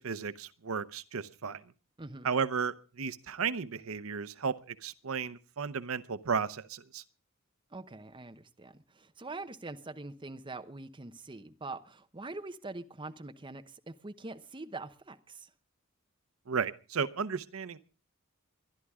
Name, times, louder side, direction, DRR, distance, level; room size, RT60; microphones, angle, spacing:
voice 1, 0.0-1.6 2.2-7.0 16.5-17.8, right 6 dB, 85° right, 0.7 m, -34 dB
voice 2, 2.0-2.3 7.7-15.5, right 3 dB, 25° right, 0.9 m, -44 dB
22.5 x 11.5 x 3.6 m
head